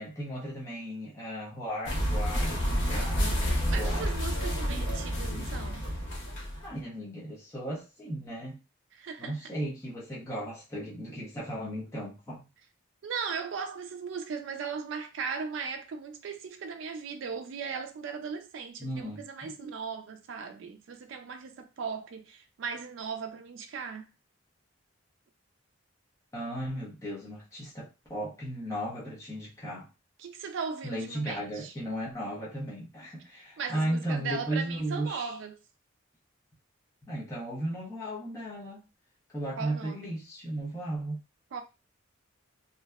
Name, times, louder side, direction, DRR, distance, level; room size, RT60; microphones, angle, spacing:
voice 1, 0.0-2.5 2.9-3.2 3.7-4.1 6.6-8.6 9.2-12.4 18.8-19.5 26.3-29.9 30.8-35.3 37.0-38.8 39.3-41.2, right 1 dB, 15° left, 0.6 m, -35 dB
sound 1, 1.8-6.8, equal, 65° left, 0.7 m, -29 dB
voice 2, 2.9-5.9 8.9-9.5 13.0-24.1 30.2-31.7 33.3-35.6 39.6-40.1 41.5-41.6, right 5 dB, 70° right, 0.3 m, -38 dB
2.6 x 2.1 x 2.2 m
head